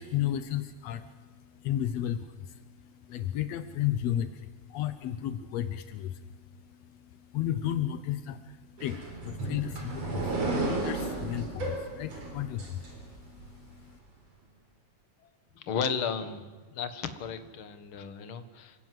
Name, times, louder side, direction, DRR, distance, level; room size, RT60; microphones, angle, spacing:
voice 1, 0.0-14.0, left 11 dB, 85° left, 11 dB, 1.4 m, -34 dB
sound 1, 8.8-13.5, right 2 dB, 45° right, 5.1 m, -33 dB
voice 2, 15.5-16.4 16.7-18.7, left 6 dB, 50° left, 10 dB, 1.7 m, -34 dB
27.5 x 17.0 x 7.7 m, 1.4 s
omnidirectional pair, 4.1 m